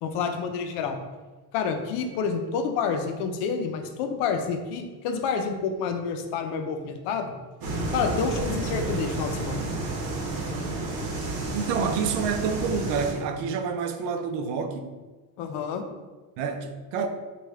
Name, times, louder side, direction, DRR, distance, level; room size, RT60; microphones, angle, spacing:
voice 1, 0.0-1.0 1.5-7.3 7.9-9.6 15.4-15.8, left 5 dB, 80° left, 0.6 m, -28 dB
sound 1, 7.6-13.1, right 2 dB, 60° right, 0.9 m, -30 dB
voice 2, 11.5-14.8 16.4-17.1, right 6 dB, 80° right, 0.5 m, -28 dB
3.2 x 2.4 x 3.4 m
cardioid pair, 120°, 40 cm